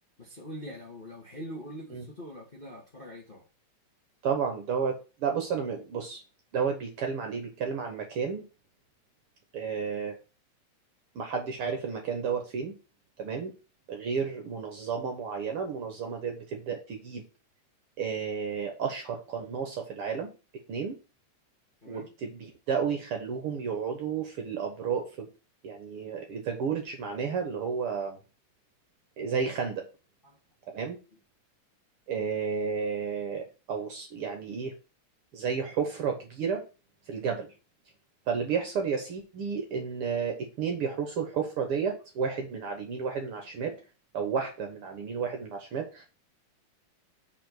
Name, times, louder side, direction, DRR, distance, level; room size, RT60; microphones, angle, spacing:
voice 1, 0.2-3.4 21.8-22.1 30.2-30.4, equal, 25° left, 1.2 m, -43 dB
voice 2, 4.2-6.2 6.5-8.4 9.5-10.1 11.1-12.7 13.2-13.5 13.9-17.3 18.0-20.3 20.7-21.0 21.9-25.3 25.6-28.2 29.2-29.8 30.7-31.0 32.1-34.7 35.3-36.6 37.1-37.5 38.3-43.8 44.1-46.0, right 6 dB, 60° right, 1.7 m, -32 dB
5.0 x 4.5 x 6.0 m
omnidirectional pair, 3.3 m